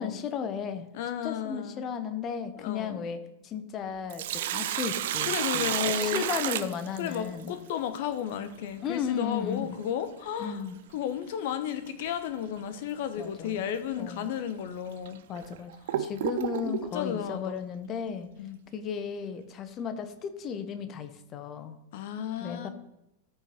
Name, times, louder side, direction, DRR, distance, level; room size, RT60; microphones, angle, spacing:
voice 1, 0.0-0.9 1.2-3.2 3.4-7.5 8.8-9.8 10.4-10.8 13.2-13.7 14.0-14.3 15.3-15.7 16.0-18.3 18.7-21.8 22.4-22.7, left 7 dB, 30° left, 10 dB, 1.2 m, -34 dB
voice 2, 0.9-1.8 2.6-3.0 5.3-6.3 7.0-10.6 10.9-15.2 15.9-16.0 16.6-17.6 18.4-18.6 21.9-22.7, left 9 dB, 50° left, 10 dB, 1.0 m, -33 dB
Sink (filling or washing), 3.9-7.5 9.9-10.0 11.9-12.1 12.6-12.7 13.5-13.6 14.3-14.4 15.0-16.9, right 11 dB, 55° right, 0.6 m, -31 dB
13.5 x 6.1 x 4.5 m, 0.89 s
figure-of-eight pair, 90°, 0 cm